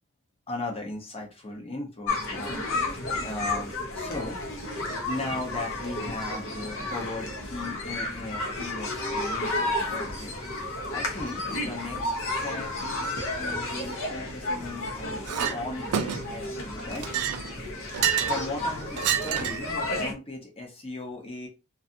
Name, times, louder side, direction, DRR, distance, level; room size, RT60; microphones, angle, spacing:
voice 1, 0.5-4.4 5.0-10.3 10.9-15.2 15.5-17.1 18.2-21.5, left 2 dB, 25° left, 0 dB, 0.7 m, -37 dB
sound 1, 2.1-20.1, left 2 dB, 60° left, 0.7 m, -32 dB
Chink clink, 15.3-15.6 15.9-16.4 16.9-18.4 19.0-19.7, right 9 dB, 80° right, 0.4 m, -28 dB
2.6 x 2.4 x 2.6 m, 0.29 s
head